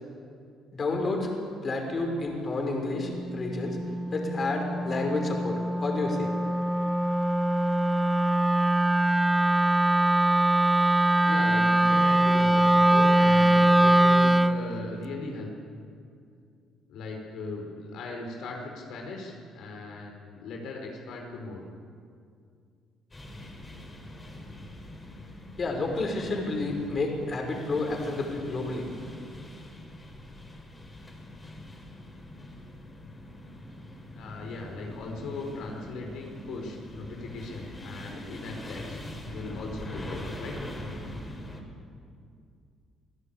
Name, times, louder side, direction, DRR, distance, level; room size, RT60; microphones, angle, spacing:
voice 1, 0.7-1.3 1.6-3.8 4.1-6.3 25.6-28.9, left 2 dB, 40° left, 2 dB, 5.4 m, -30 dB
Wind instrument woodwind instrument, 3.0-14.6, right 1 dB, 10° right, 0.8 m, -22 dB
voice 2, 11.3-15.5 16.9-21.6 34.2-39.0 39.3-40.6, left 3 dB, 75° left, 1 dB, 4.5 m, -38 dB
sound 1, 23.1-41.6, left 1 dB, 20° left, 5.0 m, -42 dB
26.0 x 15.5 x 8.7 m, 2.3 s
cardioid pair, 85°, 0 cm